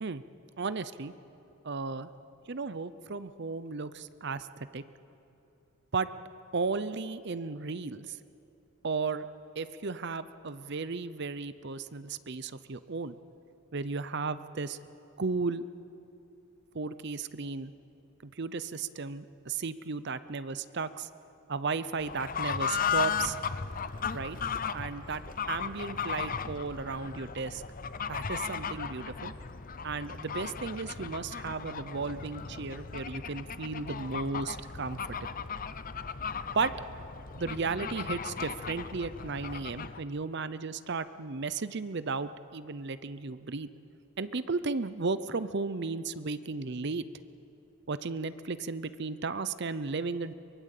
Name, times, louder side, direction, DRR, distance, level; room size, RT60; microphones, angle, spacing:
voice 1, 0.6-1.1 1.6-2.1 2.5-4.8 5.9-6.1 6.5-8.2 8.8-9.3 9.6-13.1 13.7-14.8 15.2-15.6 16.7-17.7 18.2-21.1 21.5-23.4 24.1-24.4 24.7-27.6 28.1-29.3 29.8-35.3 36.5-36.7 37.4-43.7 44.2-47.0 47.9-50.3, right 4 dB, 50° right, 14 dB, 0.7 m, -34 dB
Fowl / Bird, 22.0-40.0, left 6 dB, 40° left, 0.6 m, -36 dB
23.0 x 23.0 x 8.4 m, 2.9 s
head